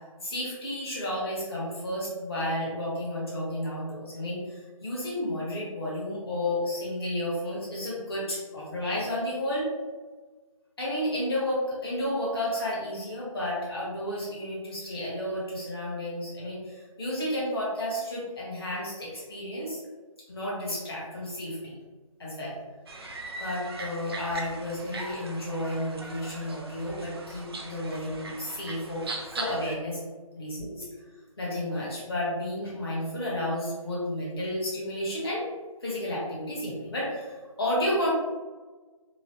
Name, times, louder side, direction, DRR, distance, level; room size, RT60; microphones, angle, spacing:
voice 1, 0.2-9.7 10.8-19.8 20.3-21.8 22.2-22.6 23.4-29.0 29.3-30.0 30.4-30.9 31.4-35.4 35.8-38.1, left 1 dB, 45° left, -6 dB, 1.1 m, -32 dB
sound 1, 22.9-29.8, right 2 dB, 45° right, 0.4 m, -39 dB
3.0 x 2.1 x 2.9 m, 1.3 s
figure-of-eight pair, 165°, 18 cm